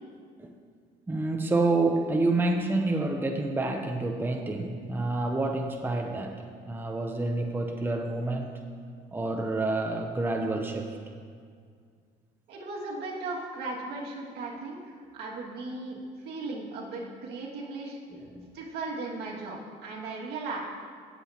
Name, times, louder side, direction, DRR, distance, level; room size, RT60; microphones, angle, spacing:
voice 1, 1.1-8.5 9.1-11.0 18.1-18.5, right 2 dB, 10° right, 3 dB, 0.7 m, -28 dB
voice 2, 12.5-18.0 18.5-20.6, right 3 dB, 75° right, -4 dB, 2.3 m, -37 dB
17.5 x 7.7 x 3.0 m, 2.1 s
cardioid pair, 110°, 17 cm